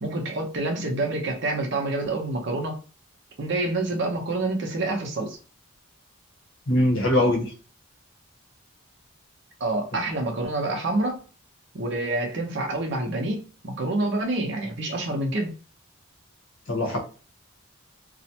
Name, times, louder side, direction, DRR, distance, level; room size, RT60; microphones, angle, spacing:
voice 1, 0.0-2.8 3.4-5.4 9.6-11.2 11.7-15.5, right 2 dB, 55° right, 0.6 m, -27 dB
voice 2, 6.7-7.5 16.7-17.0, left 1 dB, 65° left, 0.8 m, -21 dB
2.4 x 2.1 x 2.7 m
head